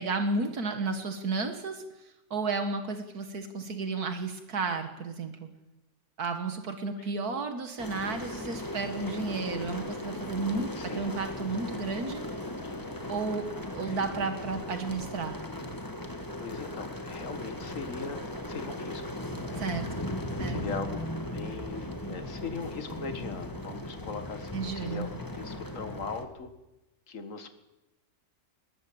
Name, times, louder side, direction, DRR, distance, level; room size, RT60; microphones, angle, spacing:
voice 1, 0.0-1.8 2.3-5.5 6.2-12.2 13.1-15.4 19.6-19.9 20.4-20.6 24.5-25.1, right 4 dB, 80° right, 7 dB, 2.0 m, -32 dB
sound 1, 7.8-26.3, left 1 dB, 15° left, 1.8 m, -37 dB
voice 2, 10.7-11.2 13.8-14.0 16.4-18.2 18.5-19.2 19.4-19.7 20.5-26.5 27.1-27.5, left 5 dB, 55° left, 8 dB, 2.1 m, -40 dB
20.5 x 19.5 x 8.7 m, 0.99 s
omnidirectional pair, 1.6 m